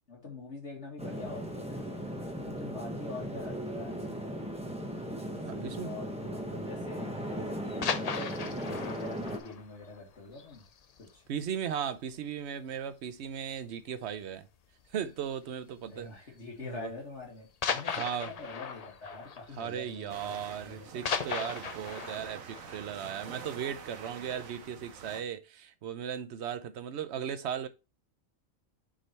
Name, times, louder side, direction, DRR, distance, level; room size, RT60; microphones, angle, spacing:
voice 1, 0.1-1.9 2.4-4.3 5.3-10.6 11.0-11.2 15.9-21.1, left 3 dB, 55° left, 2.3 m, -45 dB
sound 1, 1.0-9.4, equal, 5° right, 0.9 m, -37 dB
voice 2, 5.5-5.9 11.3-14.5 14.9-16.1 16.6-16.9 18.0-18.3 19.6-27.7, right 8 dB, 60° right, 0.9 m, -37 dB
sound 2, 7.6-11.1 11.4-11.5 12.0-12.2 12.5-12.6 13.4-13.8 15.0-15.3 16.2-16.3 17.6-20.4 20.7-23.8 24.3-24.4, left 6 dB, 80° left, 0.3 m, -37 dB
sound 3, 20.1-25.2, right 6 dB, 75° right, 1.2 m, -46 dB
6.4 x 3.9 x 4.2 m
omnidirectional pair, 1.4 m